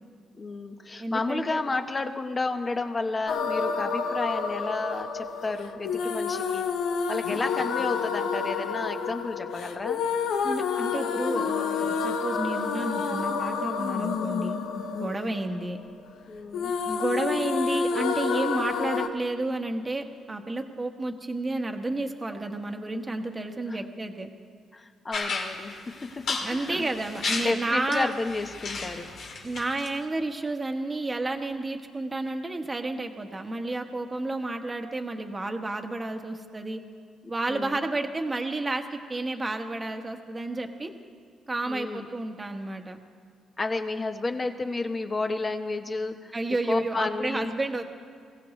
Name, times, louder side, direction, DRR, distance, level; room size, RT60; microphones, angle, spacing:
voice 1, 0.4-6.6 7.1-10.1 14.9-15.3 16.3-16.7 23.7-23.8 24.7-26.9 27.4-29.1 37.5-37.8 41.6-42.1 43.6-46.3 46.7-47.6, left 3 dB, 30° left, 6 dB, 1.1 m, -31 dB
voice 2, 1.0-1.6 10.4-14.6 15.0-15.8 16.8-24.3 26.4-28.1 29.4-36.8 37.3-40.9 41.5-43.0 46.3-47.8, right 2 dB, 20° right, 4 dB, 1.3 m, -31 dB
sound 1, 3.3-16.2 16.5-19.1, left 5 dB, 80° left, 0.9 m, -29 dB
sound 2, 25.1-29.9, left 3 dB, 65° left, 2.4 m, -34 dB
23.5 x 16.0 x 3.2 m, 2.2 s
cardioid pair, 90°, 0 cm